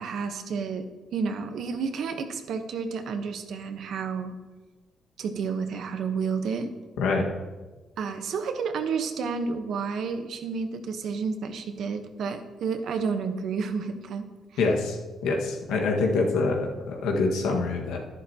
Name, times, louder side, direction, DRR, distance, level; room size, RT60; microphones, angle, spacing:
voice 1, 0.0-4.3 5.2-6.7 8.0-14.3, right 5 dB, 70° right, 7 dB, 1.0 m, -30 dB
voice 2, 14.6-15.0 15.2-18.0, left 3 dB, 90° left, 1 dB, 1.6 m, -25 dB
11.0 x 11.0 x 2.9 m, 1.3 s
cardioid pair, 90°, 0 cm